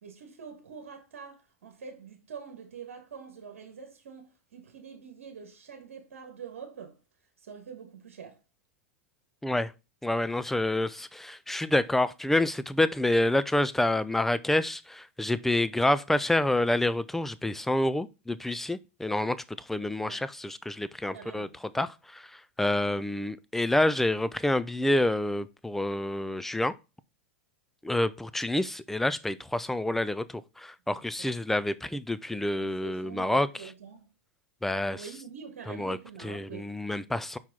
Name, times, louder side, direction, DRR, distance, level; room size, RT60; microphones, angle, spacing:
voice 1, 0.0-7.0 7.4-8.4 20.0-20.2 21.1-21.5 30.9-31.3 32.6-34.1 34.9-36.7, right 6 dB, 75° right, 1.5 m, -45 dB
voice 2, 10.0-19.4 19.7-21.5 21.7-26.7 27.8-33.5 34.6-35.0 35.7-37.4, left 1 dB, 5° left, 0.5 m, -28 dB
5.7 x 4.6 x 3.7 m
hypercardioid pair, 100°, 7 cm